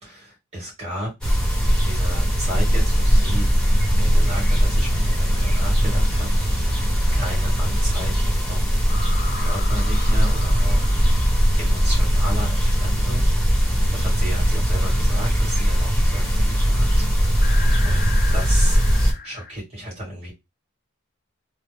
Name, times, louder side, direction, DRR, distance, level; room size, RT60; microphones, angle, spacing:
voice 1, 0.0-1.4 1.7-6.9 7.1-10.9 11.6-17.1 17.3-20.3, equal, 30° right, 2.0 m, -34 dB
sound 1, 1.2-19.1, equal, 5° left, 1.0 m, -19 dB
Sonar pings assorted, 3.0-3.8 8.9-12.6 17.4-19.5, left 5 dB, 40° left, 0.5 m, -38 dB
3.2 x 2.0 x 3.4 m
head